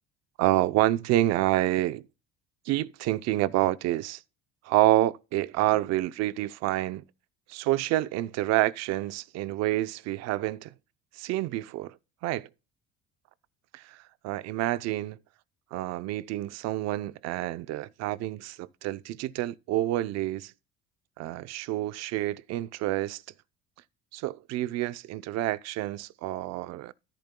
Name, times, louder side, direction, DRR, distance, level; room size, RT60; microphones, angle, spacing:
voice 1, 0.4-2.0 2.7-4.2 4.7-7.0 7.5-10.7 11.2-11.9 12.2-12.5 13.7-14.0 14.2-15.2 15.7-20.5 21.2-23.2 24.1-26.9, right 15 dB, 60° right, 0.6 m, -28 dB
13.5 x 9.1 x 2.2 m
cardioid pair, 170°, 29 cm